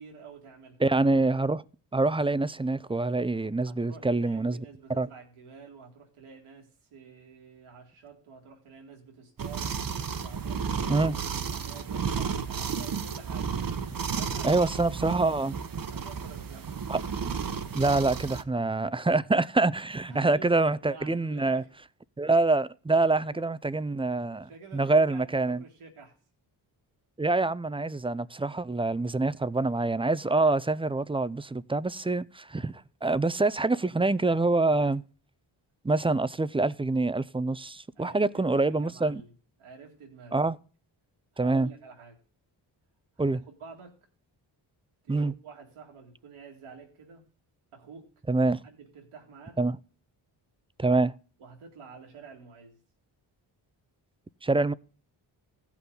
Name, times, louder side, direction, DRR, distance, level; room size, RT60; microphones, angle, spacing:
voice 1, 0.0-0.8 3.7-13.5 14.2-14.6 15.9-16.7 20.1-21.7 23.1-23.4 24.3-26.2 38.0-39.3 39.6-40.4 41.3-42.2 43.2-44.0 45.0-47.2 47.7-48.1 48.6-49.6 51.4-52.8, right 5 dB, 80° right, 2.2 m, -49 dB
voice 2, 0.8-1.6 1.9-4.6 5.0-5.1 10.9-11.2 14.4-15.6 16.9-17.0 17.7-21.6 22.2-25.6 27.2-35.0 35.8-39.2 40.3-40.6 41.4-41.7 43.2-43.4 45.1-45.3 48.3-48.6 49.6-49.8 50.8-51.1 54.4-54.7, right 3 dB, 10° right, 0.4 m, -26 dB
sound 1, 9.4-18.4, right 6 dB, 45° right, 1.0 m, -33 dB
15.5 x 5.8 x 3.9 m
supercardioid pair, 45°, 49 cm